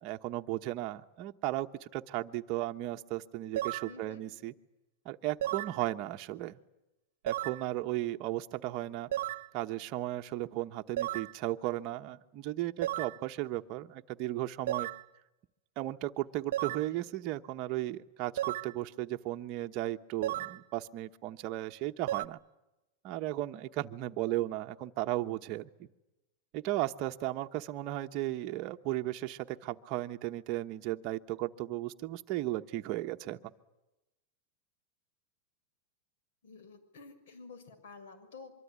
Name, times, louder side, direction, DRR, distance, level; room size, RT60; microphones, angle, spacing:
voice 1, 0.0-4.5 5.0-6.6 7.2-9.1 9.5-14.9 15.8-22.4 23.0-25.9 26.5-33.5, right 15 dB, 35° right, 6 dB, 1.1 m, -35 dB
sound 1, 3.6-3.9 5.4-5.8 7.3-7.6 9.1-9.5 11.0-11.3 12.8-13.2 14.7-15.0 16.5-16.9 18.4-18.7 20.2-20.6 22.1-22.3, right 13 dB, 70° right, 1.0 m, -34 dB
voice 2, 3.8-4.3 16.9-17.0 36.4-38.5, left 4 dB, 75° left, 10 dB, 6.2 m, -51 dB
24.5 x 24.0 x 9.7 m, 0.96 s
supercardioid pair, 165°, 0 cm